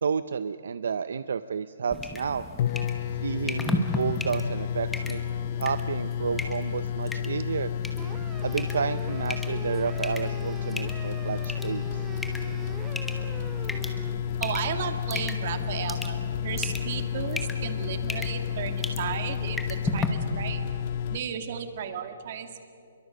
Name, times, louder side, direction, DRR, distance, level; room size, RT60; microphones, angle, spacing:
voice 1, 0.0-2.4 3.2-5.2 5.6-7.7 8.4-11.8, right 6 dB, 70° right, 13 dB, 0.6 m, -30 dB
sound 1, 1.9-20.1, left 2 dB, 5° left, 1.1 m, -36 dB
sound 2, 2.3-2.4 2.6-21.2, left 9 dB, 35° left, 0.5 m, -31 dB
sound 3, 8.0-14.2, right 8 dB, 15° right, 0.5 m, -44 dB
voice 2, 14.4-20.7 21.1-22.7, right 8 dB, 40° right, 8 dB, 1.8 m, -34 dB
24.0 x 23.0 x 6.6 m, 2.4 s
hypercardioid pair, 170°, 0 cm